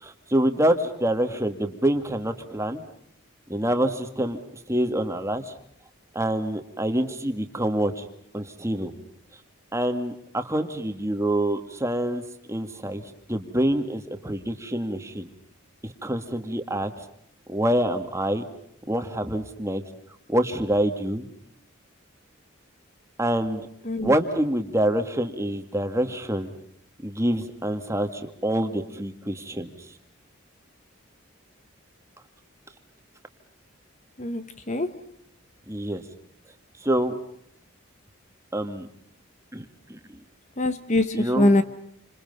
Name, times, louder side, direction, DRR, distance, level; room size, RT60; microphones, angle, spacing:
voice 1, 0.0-2.8 3.5-4.4 4.7-5.5 6.1-8.1 8.3-8.9 9.7-12.2 12.5-15.3 15.8-17.0 17.5-18.4 18.9-19.8 20.3-21.3 23.2-23.7 24.0-26.5 27.0-29.7 35.7-36.0 36.8-37.2 38.5-38.9 39.5-40.2 41.1-41.5, right 1 dB, 15° right, 2.0 m, -26 dB
voice 2, 34.2-35.0 40.6-41.6, left 1 dB, 35° left, 1.1 m, -23 dB
29.5 x 27.0 x 5.5 m
head